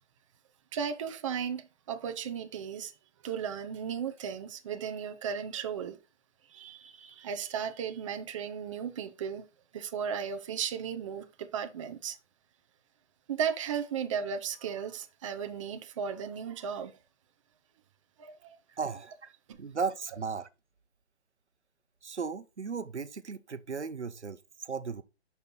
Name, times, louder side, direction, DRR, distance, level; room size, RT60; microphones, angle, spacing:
voice 1, 0.7-2.9 3.2-6.0 6.5-9.4 9.7-12.2 13.3-17.0 18.2-18.6 19.5-19.6, right 7 dB, 30° right, 0.7 m, -35 dB
voice 2, 18.7-19.3 19.6-20.5 22.0-25.0, right 5 dB, 85° right, 0.9 m, -36 dB
6.5 x 5.6 x 4.1 m
figure-of-eight pair, 140°, 33 cm